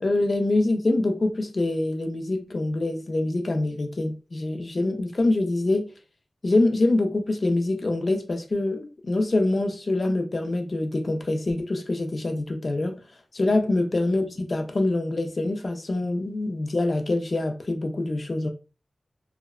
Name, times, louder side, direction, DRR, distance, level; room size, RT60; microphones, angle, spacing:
voice 1, 0.0-5.9 6.4-13.0 13.3-18.5, left 2 dB, 50° left, 0.4 m, -25 dB
2.7 x 2.1 x 2.2 m
wide cardioid pair, 60°, 0 cm